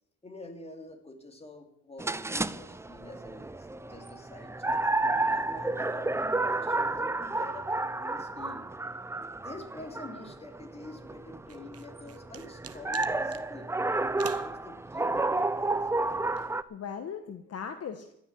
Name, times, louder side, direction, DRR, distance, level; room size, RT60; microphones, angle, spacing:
voice 1, 0.2-4.8 5.3-7.7 8.0-8.7 9.3-13.7 14.2-15.9, left 2 dB, 20° left, 4 dB, 2.7 m, -47 dB
sound 1, 2.0-16.6, right 2 dB, 10° right, 0.5 m, -31 dB
sound 2, 11.5-13.5 14.2-14.5, right 9 dB, 50° right, 1.1 m, -45 dB
voice 2, 16.4-18.1, left 7 dB, 55° left, 7 dB, 1.2 m, -39 dB
15.0 x 6.3 x 10.0 m, 0.76 s
cardioid pair, 90°, 30 cm